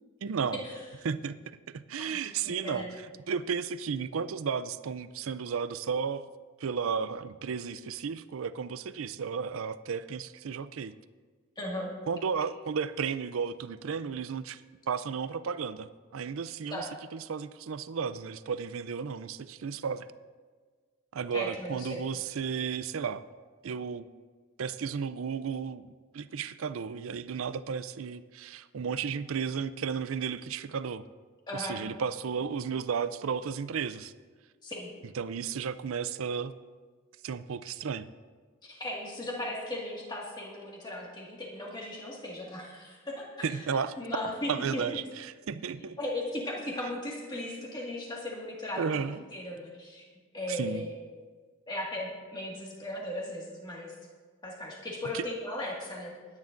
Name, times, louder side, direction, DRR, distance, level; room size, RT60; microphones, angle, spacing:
voice 1, 0.2-0.6 1.0-2.9 3.3-6.3 6.6-10.9 12.1-14.6 14.9-20.1 21.1-23.2 23.6-24.1 24.6-31.0 31.5-34.1 35.1-36.5 37.2-38.1 43.4-43.9 44.5-46.0 48.8-49.2 50.5-50.9 55.1-55.2, right 6 dB, 70° right, 15 dB, 0.4 m, -33 dB
voice 2, 1.9-2.9 11.6-11.9 16.7-16.9 21.3-22.0 31.5-31.8 34.6-34.9 38.6-45.0 46.0-50.0 50.3-50.9 51.7-53.9 54.4-56.1, left 1 dB, 20° left, -3 dB, 1.9 m, -37 dB
21.0 x 9.7 x 2.6 m, 1.5 s
head